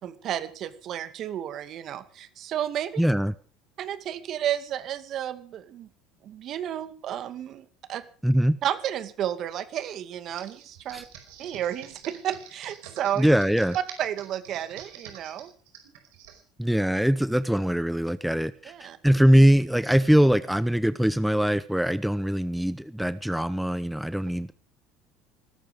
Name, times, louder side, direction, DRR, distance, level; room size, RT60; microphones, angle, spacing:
voice 1, 0.0-3.0 3.8-5.9 6.2-8.0 8.6-11.1 11.4-13.3 14.0-15.5 18.7-19.0, right 10 dB, 55° right, 12 dB, 2.2 m, -32 dB
voice 2, 3.0-3.3 8.2-8.6 10.9-11.0 13.2-13.8 16.6-24.5, equal, ahead, 16 dB, 0.8 m, -22 dB
Computer keyboard, 10.3-16.4, right 9 dB, 80° right, 5.1 m, -46 dB
20.0 x 14.0 x 5.2 m, 0.40 s
supercardioid pair, 85°, 0 cm